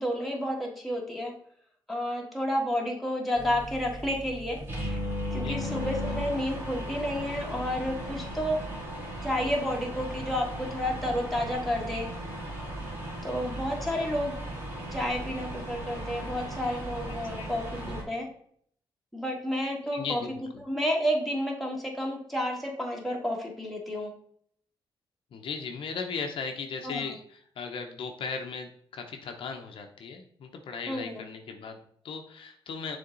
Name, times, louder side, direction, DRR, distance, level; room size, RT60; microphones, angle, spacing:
voice 1, 0.0-1.3 1.9-4.6 4.9-5.0 5.3-8.6 9.2-12.1 13.2-14.3 14.9-18.2 19.1-20.2 20.6-24.1 26.8-27.1 30.9-31.2, equal, ahead, -2 dB, 1.7 m, -31 dB
sound 1, 3.3-18.0, equal, 25° right, 2.6 m, -36 dB
voice 2, 17.0-17.5 19.9-20.6 25.3-33.0, left 5 dB, 70° left, 4 dB, 0.8 m, -37 dB
6.8 x 3.6 x 3.9 m, 0.63 s
cardioid pair, 95°, 9 cm